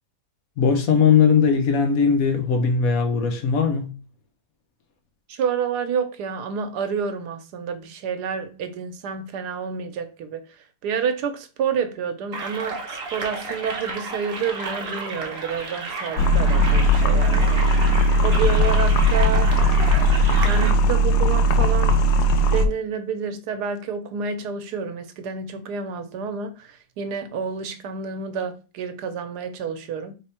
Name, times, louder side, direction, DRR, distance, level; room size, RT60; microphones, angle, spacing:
voice 1, 0.6-4.0, left 6 dB, 65° left, 1.2 m, -19 dB
voice 2, 5.3-19.5 20.4-22.0 22.5-30.1, right 6 dB, 90° right, 1.3 m, -29 dB
sound 1, 12.3-20.7, right 4 dB, 45° right, 1.0 m, -32 dB
sound 2, 16.2-22.7, equal, 90° left, 1.2 m, -18 dB
3.3 x 3.3 x 4.2 m
omnidirectional pair, 1.7 m